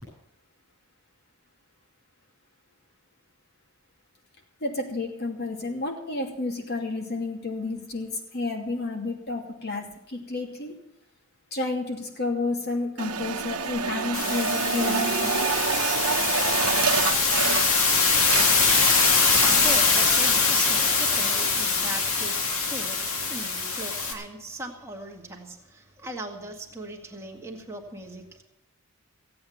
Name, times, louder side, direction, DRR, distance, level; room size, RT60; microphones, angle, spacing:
voice 1, 4.6-10.7 11.5-15.3, left 3 dB, 45° left, 2 dB, 2.6 m, -31 dB
sound 1, 13.0-17.9 18.2-19.7, right 6 dB, 80° right, 1.0 m, -28 dB
sound 2, 14.1-24.1, left 4 dB, 70° left, 2.3 m, -23 dB
voice 2, 19.5-28.4, right 1 dB, 10° right, 0 dB, 2.0 m, -39 dB
16.0 x 8.7 x 7.1 m, 0.82 s
head